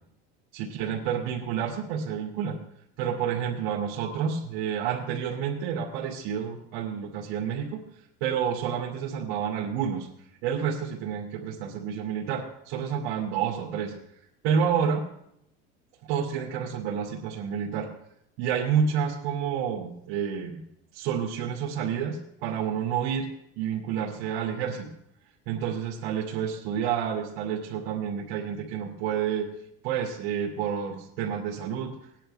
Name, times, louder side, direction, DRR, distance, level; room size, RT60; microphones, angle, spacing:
voice 1, 0.5-2.6 3.0-7.8 8.2-10.1 10.4-13.9 14.4-15.1 16.1-17.9 18.4-20.6 20.9-23.3 23.6-24.9 25.5-29.5 29.8-32.0, right 7 dB, 75° right, -4 dB, 2.4 m, -29 dB
19.0 x 10.0 x 3.4 m, 0.76 s
supercardioid pair, 115°, 33 cm